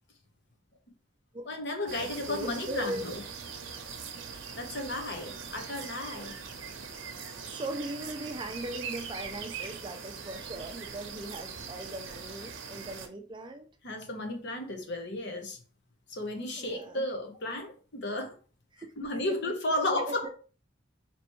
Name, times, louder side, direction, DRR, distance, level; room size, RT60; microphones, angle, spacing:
voice 1, 1.5-3.1 4.5-6.3 13.8-15.6 16.1-18.3 19.0-20.3, left 1 dB, 60° left, 1.0 m, -33 dB
sound 1, 1.9-13.1, right 6 dB, 70° right, 0.7 m, -42 dB
voice 2, 2.0-3.1 7.5-13.7 16.6-17.0 18.7-18.9 19.9-20.3, right 1 dB, 25° right, 0.4 m, -39 dB
4.4 x 3.0 x 3.1 m
head